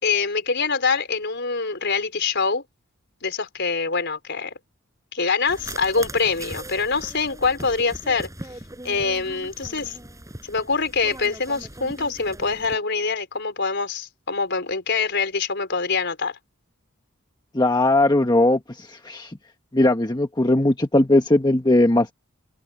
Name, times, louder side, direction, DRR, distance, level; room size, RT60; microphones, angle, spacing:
voice 1, 0.0-2.6 3.2-4.5 5.1-8.3 8.8-10.0 10.4-16.4, left 4 dB, 55° left, 4.4 m, -24 dB
sound 1, 5.5-12.8, right 1 dB, 15° right, 6.0 m, -39 dB
voice 2, 17.5-19.3 19.7-22.1, left 1 dB, 20° left, 1.3 m, -19 dB
open air
head